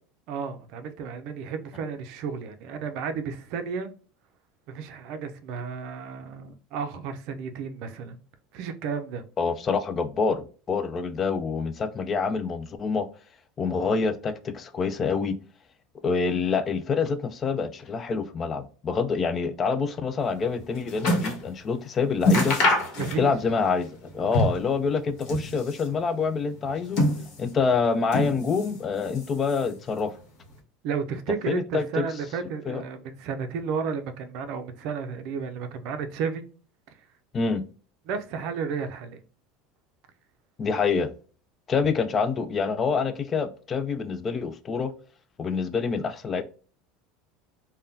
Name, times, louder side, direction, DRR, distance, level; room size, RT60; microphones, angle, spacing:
voice 1, 0.3-3.9 4.7-8.2 8.5-9.2 23.0-23.3 27.2-27.3 30.8-36.4 38.1-39.2, right 6 dB, 55° right, 0.4 m, -32 dB
voice 2, 9.4-13.1 13.6-15.4 16.0-22.6 23.2-27.0 27.4-30.1 31.5-32.1 32.7-32.8 37.3-37.6 40.6-41.1 41.7-44.9 45.4-46.4, left 5 dB, 25° left, 0.3 m, -26 dB
sound 1, 20.3-21.5 21.8-21.9 22.2-23.5 23.8-24.7 25.1-26.0 26.6-27.6 28.1-28.8 29.1-29.8 30.5-30.6, left 1 dB, 50° left, 1.1 m, -26 dB
3.5 x 2.2 x 2.6 m
supercardioid pair, 150°, 0 cm